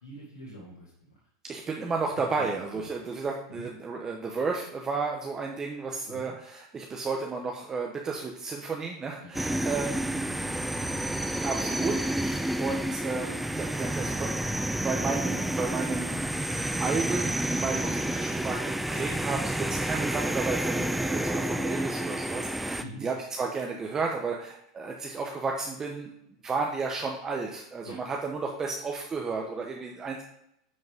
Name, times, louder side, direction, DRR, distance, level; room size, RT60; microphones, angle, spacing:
voice 1, 0.0-1.2 2.2-2.3 2.7-2.9 3.5-3.7 6.1-6.4 9.2-11.2 22.8-23.0 27.8-28.0, equal, 85° left, -4 dB, 2.2 m, -46 dB
voice 2, 1.4-10.3 11.4-14.4 14.7-16.2 16.8-26.1 26.4-30.2, right 4 dB, 25° right, 0 dB, 1.1 m, -33 dB
sound 1, 9.3-22.8, right 1 dB, 5° right, 0.5 m, -30 dB
9.6 x 5.2 x 3.6 m, 0.78 s
hypercardioid pair, 100°, 2 cm